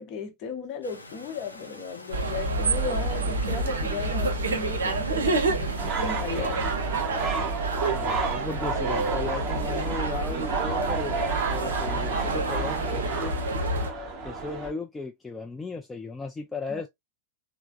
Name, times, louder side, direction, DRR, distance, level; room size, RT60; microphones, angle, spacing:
voice 1, 0.0-6.8 16.7-16.9, left 6 dB, 35° left, 0.8 m, -36 dB
sound 1, 0.8-6.4, left 2 dB, 85° left, 0.5 m, -46 dB
sound 2, 2.1-13.9, right 2 dB, 70° right, 0.6 m, -28 dB
sound 3, 5.8-14.7, right 4 dB, 30° right, 0.8 m, -31 dB
voice 2, 7.9-11.2 11.5-13.3 14.2-16.9, left 3 dB, 10° left, 0.3 m, -36 dB
3.2 x 2.0 x 2.4 m
figure-of-eight pair, 90°, 0 cm